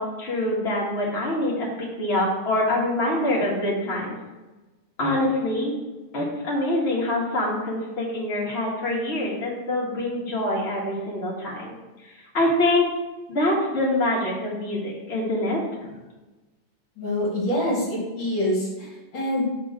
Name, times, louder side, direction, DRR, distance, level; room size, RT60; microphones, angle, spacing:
voice 1, 0.0-1.7 2.0-4.2 5.0-5.7 6.1-11.7 12.3-12.9 13.3-15.6, left 1 dB, 30° left, -5 dB, 1.9 m, -25 dB
voice 2, 17.0-18.9 19.1-19.5, left 1 dB, 60° left, -3 dB, 2.0 m, -25 dB
6.3 x 3.7 x 6.2 m, 1.1 s
omnidirectional pair, 2.4 m